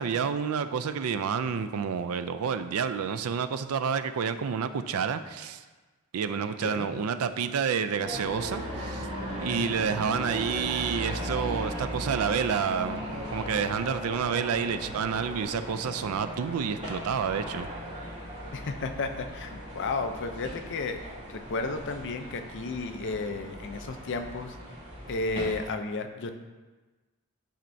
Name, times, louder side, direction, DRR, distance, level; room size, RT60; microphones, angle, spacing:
voice 1, 0.0-5.6 6.1-9.1 9.4-17.7, right 6 dB, 75° right, 11 dB, 0.4 m, -29 dB
sound 1, 8.0-25.7, equal, 35° right, 2.2 m, -37 dB
voice 2, 9.6-10.0 18.5-21.0 21.3-24.6 25.1-26.3, left 3 dB, 55° left, 7 dB, 0.5 m, -33 dB
10.0 x 4.4 x 2.6 m, 1.3 s
head